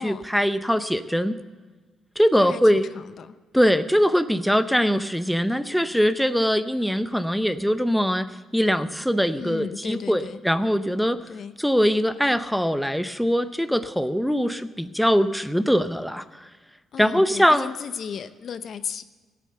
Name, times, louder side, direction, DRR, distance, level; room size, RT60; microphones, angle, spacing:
voice 1, 0.0-1.3 2.2-2.9 3.5-8.3 8.5-11.2 11.6-16.5 17.0-17.7, equal, ahead, 11 dB, 0.6 m, -22 dB
voice 2, 2.3-3.4 9.4-10.4 11.3-11.6 16.9-19.0, left 7 dB, 60° left, 12 dB, 0.7 m, -35 dB
15.0 x 8.5 x 6.8 m, 1.3 s
cardioid pair, 90°, 0 cm